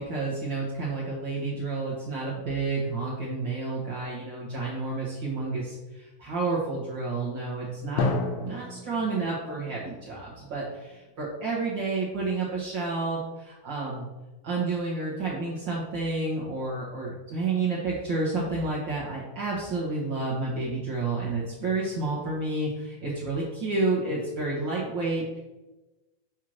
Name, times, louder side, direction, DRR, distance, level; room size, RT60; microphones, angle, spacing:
voice 1, 0.0-8.1 8.4-14.0 14.4-25.4, right 3 dB, 55° right, -6 dB, 1.2 m, -30 dB
Drum, 8.0-11.7, left 3 dB, 80° left, 1.5 m, -33 dB
5.6 x 4.6 x 6.3 m, 1.1 s
omnidirectional pair, 4.0 m